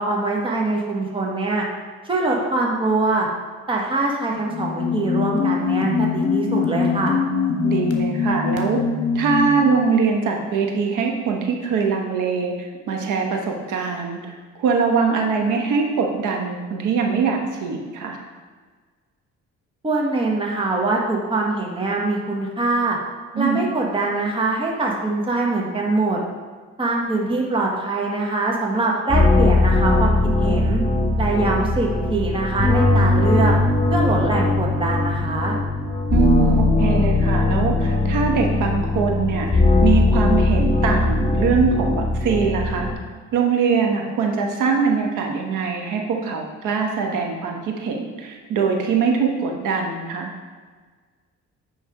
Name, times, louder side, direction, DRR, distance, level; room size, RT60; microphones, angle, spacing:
voice 1, 0.0-1.6 2.0-3.3 3.7-7.1 19.8-23.0 23.4-26.2 26.8-30.8 31.2-33.5 33.9-35.6, right 2 dB, 15° right, -2 dB, 1.2 m, -23 dB
sound 1, 4.4-9.7, left 5 dB, 55° left, 1.2 m, -22 dB
voice 2, 7.6-8.8 9.1-18.2 23.3-23.6 36.1-42.9 43.3-50.3, right 5 dB, 85° right, 2 dB, 1.1 m, -22 dB
sound 2, 29.1-42.9, left 2 dB, 20° left, 1.4 m, -19 dB
8.9 x 3.3 x 4.9 m, 1.5 s
cardioid pair, 90°, 30 cm